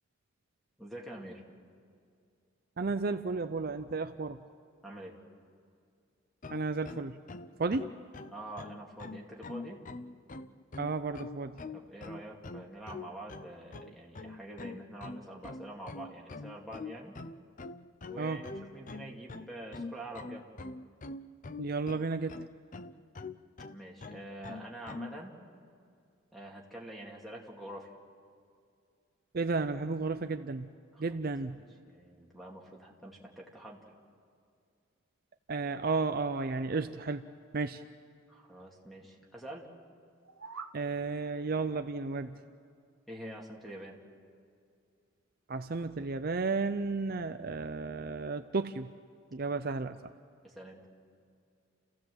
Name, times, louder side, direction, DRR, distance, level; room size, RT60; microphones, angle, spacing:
voice 1, 0.8-1.4 4.8-5.2 8.3-9.8 11.7-17.1 18.1-20.4 23.7-25.3 26.3-27.9 30.9-31.2 31.5-33.9 38.3-39.7 43.1-44.0 50.4-50.8, right 1 dB, ahead, -1 dB, 2.6 m, -46 dB
voice 2, 2.8-4.4 6.5-7.2 7.6-7.9 10.8-11.5 18.2-18.4 21.6-22.5 29.3-30.7 31.0-31.6 35.5-37.2 37.5-37.8 40.7-42.4 45.5-48.9 49.3-50.1, right 3 dB, 45° right, 8 dB, 0.5 m, -33 dB
sound 1, 6.4-25.2, left 3 dB, 40° left, 0.6 m, -44 dB
sound 2, 40.1-40.8, right 4 dB, 70° right, 1.1 m, -45 dB
30.0 x 15.5 x 7.9 m, 2.3 s
head